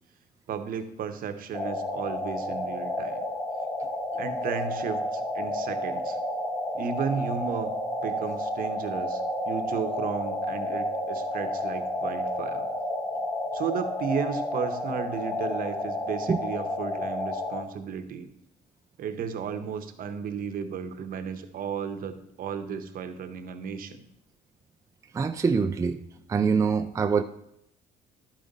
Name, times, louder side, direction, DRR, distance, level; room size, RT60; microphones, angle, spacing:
voice 1, 0.5-3.2 4.2-6.2 6.7-7.7 8.0-12.7 13.5-18.3 19.0-24.0, right 7 dB, 55° right, 9 dB, 0.9 m, -34 dB
sound 1, 1.5-17.6, left 1 dB, 15° left, 1.1 m, -31 dB
voice 2, 25.1-26.0 26.3-27.2, right 5 dB, 20° right, 6 dB, 0.3 m, -24 dB
11.5 x 5.2 x 4.0 m, 0.77 s
cardioid pair, 110°, 17 cm